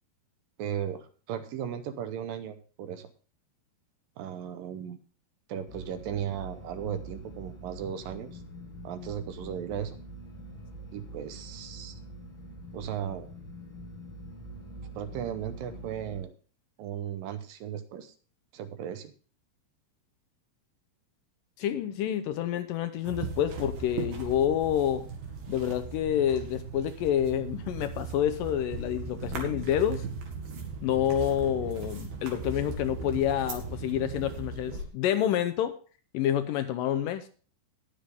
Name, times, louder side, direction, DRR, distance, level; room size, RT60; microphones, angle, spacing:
voice 1, 0.6-3.1 4.2-5.0 5.5-8.4 8.8-10.0 10.9-12.0 12.7-13.3 15.0-16.3 16.8-18.1 18.5-19.1, right 9 dB, 75° right, 10 dB, 2.4 m, -36 dB
sound 1, 5.7-16.2, right 1 dB, 40° left, 2.3 m, -45 dB
voice 2, 21.6-25.1 25.5-30.0 30.8-35.7 36.1-37.3, left 10 dB, 80° left, 10 dB, 2.1 m, -28 dB
sound 2, 23.1-34.9, right 4 dB, 60° right, 3.3 m, -38 dB
19.0 x 6.6 x 3.5 m, 0.39 s
omnidirectional pair, 4.3 m